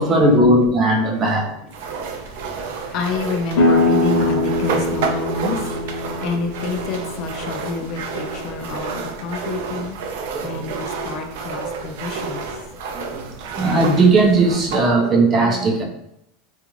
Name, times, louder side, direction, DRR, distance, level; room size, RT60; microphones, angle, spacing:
voice 1, 0.0-1.6 10.3-10.7 12.9-15.8, right 2 dB, 25° right, 0 dB, 0.6 m, -17 dB
sound 1, 1.7-14.9, right 4 dB, 70° right, 0.4 m, -30 dB
voice 2, 2.1-12.5, left 4 dB, 45° left, 3 dB, 0.4 m, -29 dB
sound 2, 3.5-9.1, left 2 dB, 70° left, 0.8 m, -23 dB
2.5 x 2.4 x 3.1 m, 0.78 s
supercardioid pair, 145°, 0 cm